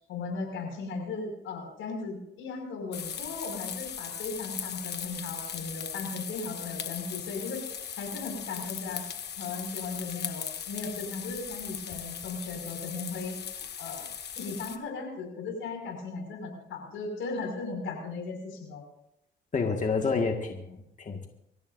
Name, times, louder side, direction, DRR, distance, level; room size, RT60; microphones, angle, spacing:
voice 1, 0.0-7.6 8.0-9.1 9.4-13.4 13.8-14.1 14.4-18.8, left 4 dB, 85° left, 3 dB, 5.8 m, -37 dB
sound 1, 2.9-14.8, left 8 dB, 55° left, 1.5 m, -38 dB
voice 2, 19.5-21.3, left 4 dB, 40° left, 3 dB, 1.9 m, -29 dB
24.5 x 15.5 x 2.7 m, 0.78 s
cardioid pair, 90°, 20 cm